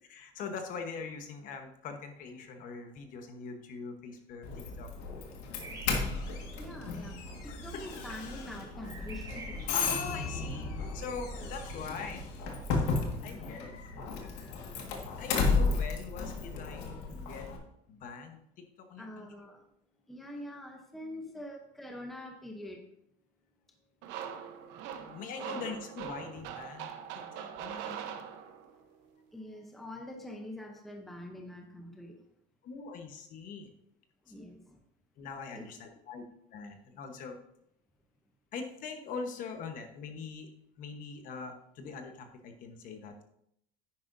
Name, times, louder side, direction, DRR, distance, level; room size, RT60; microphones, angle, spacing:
voice 1, 0.0-4.9 7.5-7.6 9.7-12.2 13.2-14.9 15.2-17.5 17.9-18.4 18.8-19.3 24.9-28.2 32.6-33.7 34.3-34.4 35.2-36.2 36.5-37.3 38.5-40.5 40.8-43.2, left 5 dB, 40° left, 5 dB, 1.1 m, -43 dB
Doorbell, 4.4-17.6, left 4 dB, 90° left, 1.8 m, -34 dB
sound 1, 5.6-13.1, right 3 dB, 15° right, 1.3 m, -46 dB
voice 2, 6.6-9.7 11.4-11.5 13.3-13.7 19.0-19.6 20.1-22.8 25.4-25.7 29.3-32.2 34.2-34.8 35.5-35.7, left 1 dB, ahead, 2 dB, 0.7 m, -45 dB
sound 2, 24.0-28.8, right 9 dB, 60° right, 0.9 m, -42 dB
10.0 x 9.9 x 2.7 m, 0.75 s
cardioid pair, 165°, 20 cm